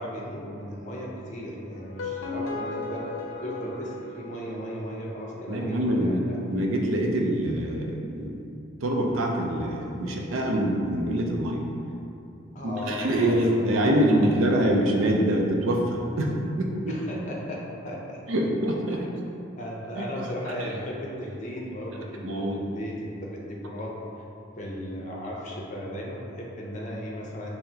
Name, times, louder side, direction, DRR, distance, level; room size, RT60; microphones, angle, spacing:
voice 1, 0.0-3.1 3.4-6.4 12.5-14.5 16.9-18.2 18.9-19.0 19.6-23.9 24.6-27.5, equal, 35° left, -3 dB, 0.5 m, -36 dB
sound 1, 1.8-4.9, left 3 dB, 80° left, 0.5 m, -35 dB
voice 2, 5.5-6.2 6.5-8.3 8.8-11.6 12.6-16.9 18.3-19.3 20.6-20.7 22.2-22.6, right 1 dB, 85° right, 0 dB, 0.5 m, -25 dB
5.7 x 2.1 x 2.8 m, 2.7 s
head